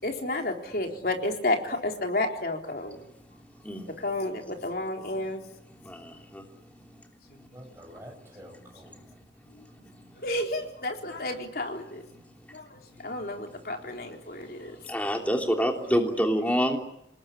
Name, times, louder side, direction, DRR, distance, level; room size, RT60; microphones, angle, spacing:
voice 1, 0.0-3.0 4.0-5.4 10.2-12.0 12.5-14.8, left 2 dB, 55° left, 3 dB, 3.9 m, -31 dB
voice 2, 5.8-6.4 14.9-16.8, equal, 10° left, 2 dB, 3.1 m, -26 dB
voice 3, 7.5-9.2, equal, 15° right, 0 dB, 7.9 m, -49 dB
28.0 x 20.0 x 10.0 m, 0.80 s
head